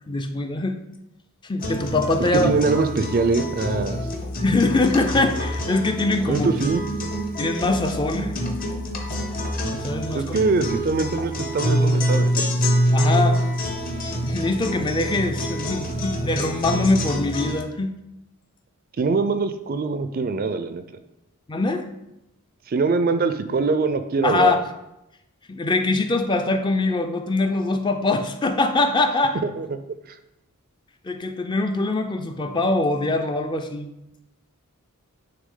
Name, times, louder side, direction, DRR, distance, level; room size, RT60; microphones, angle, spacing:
voice 1, 0.1-0.8 1.4-2.9 4.4-6.5 7.4-8.3 9.7-10.4 12.9-13.4 14.0-17.9 21.5-21.9 24.2-24.6 25.5-29.4 31.0-33.9, left 2 dB, 20° left, 7 dB, 0.4 m, -23 dB
sound 1, 1.6-17.6, equal, 40° left, 0.9 m, -26 dB
voice 2, 2.3-4.0 6.3-6.8 10.1-12.5 19.0-21.0 22.7-24.6 29.4-29.8 30.1-30.2, right 4 dB, 40° right, 10 dB, 0.4 m, -23 dB
9.5 x 3.4 x 3.8 m, 0.88 s
head